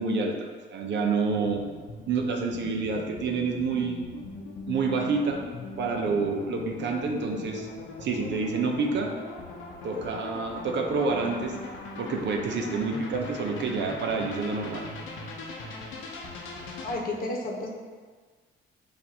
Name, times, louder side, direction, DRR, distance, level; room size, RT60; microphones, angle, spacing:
voice 1, 0.0-1.6 2.1-4.1 4.7-5.4 5.8-7.7 8.0-9.2 9.8-11.6 12.0-14.9, right 4 dB, 65° right, 2 dB, 0.7 m, -28 dB
sound 1, 1.4-17.0, left 3 dB, 80° left, 0.7 m, -40 dB
voice 2, 16.8-17.7, left 2 dB, 45° left, 0 dB, 1.0 m, -31 dB
7.3 x 2.6 x 2.9 m, 1.5 s
cardioid pair, 90°, 20 cm